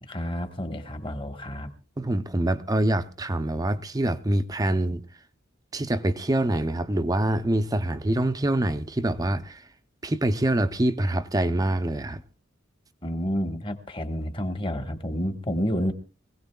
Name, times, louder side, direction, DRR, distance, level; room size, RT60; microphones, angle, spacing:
voice 1, 0.0-1.7 13.0-15.9, equal, 25° left, 1.3 m, -30 dB
voice 2, 2.0-5.1 5.7-9.7 10.0-12.2, right 1 dB, 15° right, 0.6 m, -25 dB
24.5 x 16.5 x 2.3 m
head